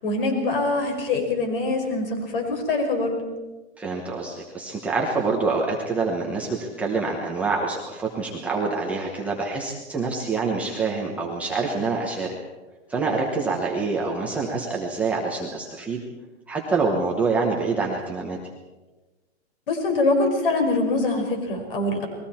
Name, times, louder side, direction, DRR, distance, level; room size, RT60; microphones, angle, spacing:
voice 1, 0.0-3.2 19.7-22.1, left 2 dB, 50° left, 4 dB, 5.6 m, -24 dB
voice 2, 3.8-12.4 12.9-16.0 16.5-18.4, right 4 dB, 5° right, -2 dB, 1.0 m, -26 dB
29.5 x 21.0 x 4.4 m, 1.2 s
hypercardioid pair, 180°, 34 cm